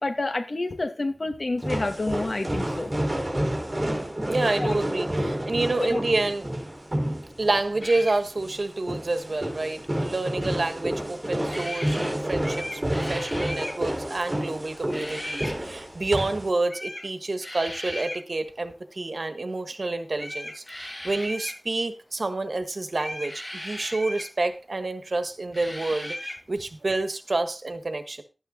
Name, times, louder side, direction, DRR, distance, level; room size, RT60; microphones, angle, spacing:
voice 1, 0.0-2.9 4.6-4.8 5.2-5.3 5.8-6.0, left 2 dB, 70° left, 6 dB, 2.1 m, -29 dB
sound 1, 1.6-16.5, right 1 dB, 30° right, 4.4 m, -30 dB
voice 2, 3.8-6.5 7.4-28.2, right 2 dB, 75° right, 9 dB, 1.5 m, -28 dB
sound 2, 7.8-8.2 11.5-12.1 12.4-13.8 14.9-15.5 16.7-17.1 17.4-18.2 20.1-21.6 22.9-24.3 25.5-26.4, left 1 dB, 40° left, 7.5 m, -36 dB
12.5 x 9.2 x 3.9 m, 0.31 s
wide cardioid pair, 65°, 0 cm